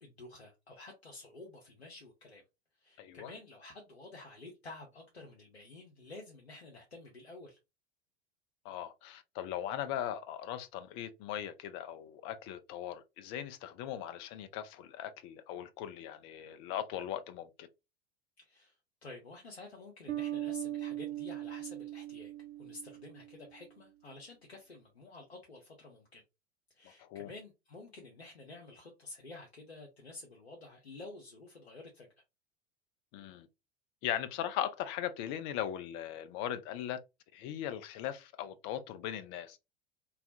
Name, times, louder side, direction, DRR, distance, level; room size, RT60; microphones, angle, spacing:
voice 1, 0.0-2.4 2.8-7.6 18.4-18.8 19.0-22.3 22.6-26.2 26.7-32.1, left 2 dB, 85° left, 0.6 m, -50 dB
voice 2, 3.0-3.3 8.6-17.7 26.8-27.3 33.1-33.5 34.0-37.0 37.3-39.6, left 11 dB, 35° left, 0.4 m, -39 dB
Bass guitar, 20.1-23.6, right 13 dB, 85° right, 0.5 m, -40 dB
2.3 x 2.0 x 2.6 m
figure-of-eight pair, 80°, 31 cm